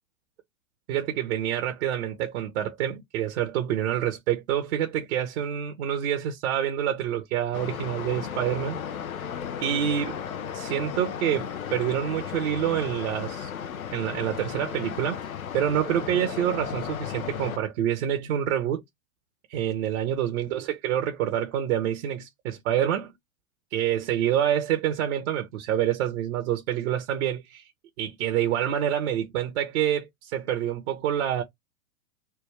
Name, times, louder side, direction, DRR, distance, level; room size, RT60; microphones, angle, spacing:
voice 1, 0.9-8.8 9.6-10.2 10.5-13.5 13.9-18.8 19.5-23.1 23.7-27.7 28.0-31.4, right 10 dB, 60° right, 0.9 m, -27 dB
sound 1, 7.5-17.6, left 8 dB, 85° left, 0.7 m, -35 dB
3.4 x 2.3 x 3.3 m
hypercardioid pair, 105°, 41 cm